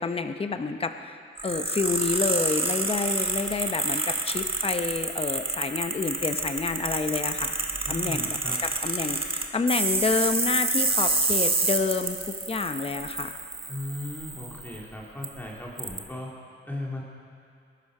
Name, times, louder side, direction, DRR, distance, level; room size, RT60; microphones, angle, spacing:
voice 1, 0.0-7.6 7.9-13.3, left 4 dB, 25° left, 8 dB, 0.7 m, -29 dB
sound 1, 1.4-14.8 15.2-15.3 15.8-16.0, right 3 dB, 25° right, 1.4 m, -28 dB
voice 2, 7.9-8.6 13.7-16.3 16.6-17.0, left 1 dB, 10° left, -3 dB, 2.1 m, -36 dB
21.5 x 12.0 x 4.9 m, 2.4 s
cardioid pair, 110°, 21 cm